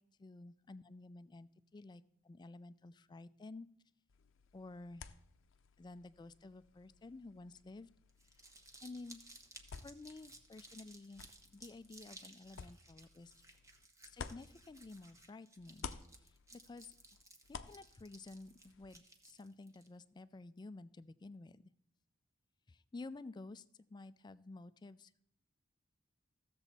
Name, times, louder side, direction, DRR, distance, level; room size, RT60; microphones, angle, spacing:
voice 1, 0.0-3.7 4.5-5.1 5.8-7.9 8.8-9.2 9.8-11.2 11.5-13.3 14.0-15.9 16.5-16.9 17.7-21.7 22.7-23.6 23.9-25.1, left 3 dB, 20° left, 15 dB, 0.3 m, -52 dB
sound 1, 4.1-15.3 15.6-19.0, left 5 dB, 85° left, 0.6 m, -54 dB
Crumpling crinkling, 8.1-19.9, right 2 dB, 15° right, 0.9 m, -59 dB
15.0 x 7.0 x 4.2 m, 0.71 s
head